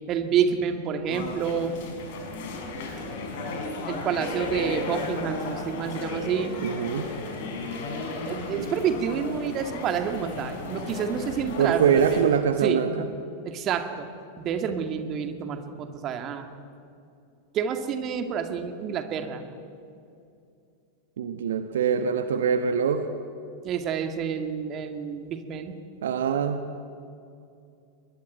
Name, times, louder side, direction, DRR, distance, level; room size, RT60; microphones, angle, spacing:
voice 1, 0.1-1.8 3.9-6.6 8.2-12.3 12.6-12.8 13.4-14.1 14.4-16.5 17.5-19.4 23.6-25.8, right 7 dB, 35° right, 7 dB, 2.3 m, -28 dB
sound 1, 1.1-12.2, left 3 dB, 55° left, 5.3 m, -34 dB
voice 2, 6.6-7.1 8.6-8.7 11.6-13.1 21.2-23.0 26.0-26.6, right 7 dB, 60° right, 8 dB, 1.3 m, -23 dB
23.5 x 20.5 x 9.5 m, 2.5 s
figure-of-eight pair, 90°, 0 cm